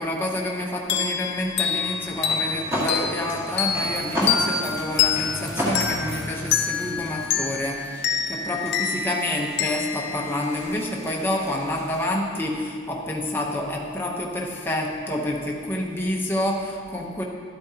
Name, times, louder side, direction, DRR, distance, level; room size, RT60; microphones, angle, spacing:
voice 1, 0.0-7.8 8.3-17.2, left 1 dB, 10° left, -1 dB, 0.8 m, -28 dB
sound 1, 0.9-11.2, left 7 dB, 55° left, 0.5 m, -27 dB
sound 2, 1.8-7.3, equal, 10° right, 1.7 m, -31 dB
sound 3, 2.5-12.1, right 1 dB, 45° right, 2.5 m, -42 dB
12.5 x 8.6 x 2.8 m, 2.1 s
head